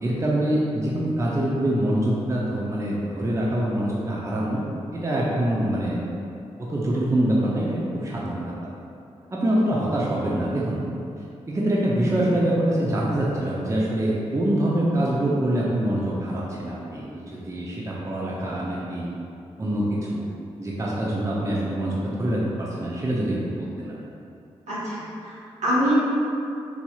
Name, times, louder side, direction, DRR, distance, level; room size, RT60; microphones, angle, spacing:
voice 1, 0.0-4.6 4.9-6.1 6.7-8.5 9.3-10.8 11.5-19.1 19.6-20.2 20.6-24.0, right 1 dB, 25° right, -5 dB, 0.6 m, -25 dB
voice 2, 24.7-25.9, equal, 75° right, -10 dB, 1.3 m, -25 dB
4.1 x 2.9 x 2.3 m, 2.6 s
supercardioid pair, 45°, 12 cm